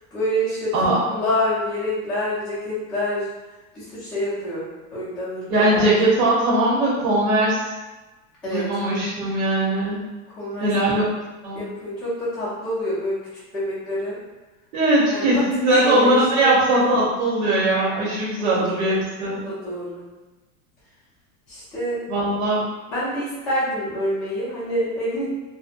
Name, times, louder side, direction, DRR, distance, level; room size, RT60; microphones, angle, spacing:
voice 1, 0.1-3.2 3.7-5.9 8.4-8.6 10.4-10.7 11.5-13.2 13.5-14.2 15.1-15.2 15.7-16.6 18.8-18.9 19.4-20.0 21.5-22.0 22.9-25.3, equal, 5° left, -13 dB, 0.4 m, -27 dB
voice 2, 5.5-7.6 8.4-10.0 10.6-11.0 11.4-11.6 14.7-19.4 22.1-22.6, right 1 dB, 80° right, -6 dB, 1.0 m, -20 dB
2.6 x 2.1 x 2.5 m, 1.2 s
supercardioid pair, 160°, 42 cm